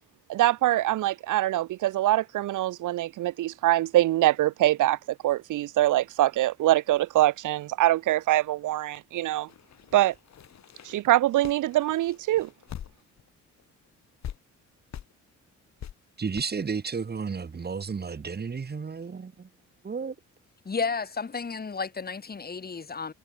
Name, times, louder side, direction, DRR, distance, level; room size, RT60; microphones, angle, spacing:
voice 1, 0.3-5.0 5.2-9.5 9.9-10.1 10.8-12.5, right 15 dB, 85° right, 3.0 m, -24 dB
sound 1, 9.5-13.3 13.6-13.7 14.2-14.4 14.9-15.1 15.8-15.9 16.3-16.4, left 10 dB, 65° left, 5.9 m, -42 dB
voice 2, 16.2-19.5 19.8-20.1, right 5 dB, 35° right, 2.2 m, -32 dB
voice 3, 20.7-23.1, left 5 dB, 30° left, 3.6 m, -32 dB
cardioid pair, 90°, 30 cm